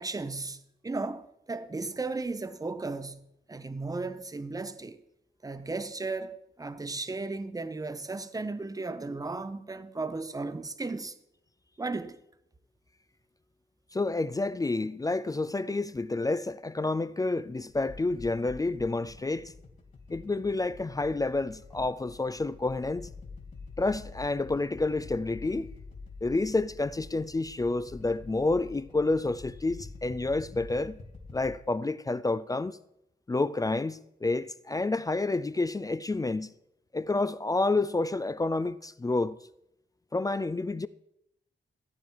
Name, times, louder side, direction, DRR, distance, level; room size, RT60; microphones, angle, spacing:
voice 1, 0.0-5.0 5.4-11.1 11.8-12.2, right 3 dB, 20° right, 0.8 m, -35 dB
voice 2, 13.9-19.5 20.1-23.1 23.8-25.7 26.2-31.0 31.3-32.8 33.3-36.5 36.9-39.4 40.1-40.9, left 2 dB, 20° left, 0.3 m, -29 dB
sound 1, 17.7-31.6, left 4 dB, 40° left, 2.5 m, -47 dB
14.5 x 9.2 x 4.6 m
wide cardioid pair, 120°, 20 cm